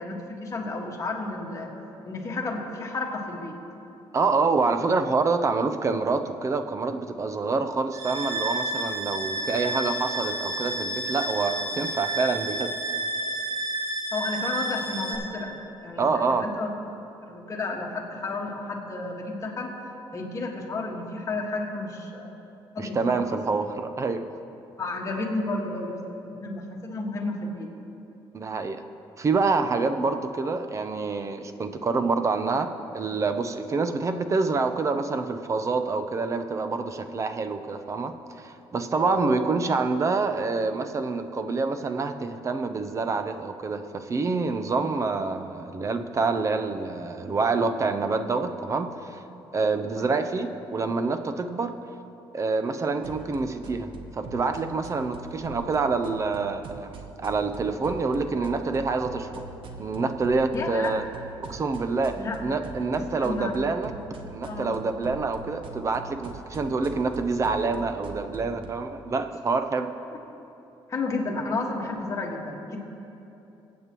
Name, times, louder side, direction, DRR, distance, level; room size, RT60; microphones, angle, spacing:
voice 1, 0.0-1.7 2.0-3.5 9.6-9.8 14.1-16.7 17.2-19.7 20.1-22.3 22.7-23.2 24.8-27.7 38.9-39.3 50.0-50.1 60.5-61.0 62.2-62.4 62.9-63.5 64.4-64.7 70.9-72.8, left 3 dB, 35° left, 0 dB, 1.7 m, -32 dB
voice 2, 4.1-12.8 16.0-16.5 22.8-24.3 28.3-28.8 29.2-49.2 49.5-51.8 52.3-59.5 59.8-61.0 61.4-63.9 64.3-69.9, right 4 dB, 30° right, 8 dB, 0.6 m, -27 dB
sound 1, 7.9-15.1, right 2 dB, 85° right, 1.6 m, -30 dB
sound 2, 53.0-68.7, right 4 dB, 65° right, 1.0 m, -43 dB
21.5 x 8.5 x 3.0 m, 2.9 s
cardioid pair, 115°, 10 cm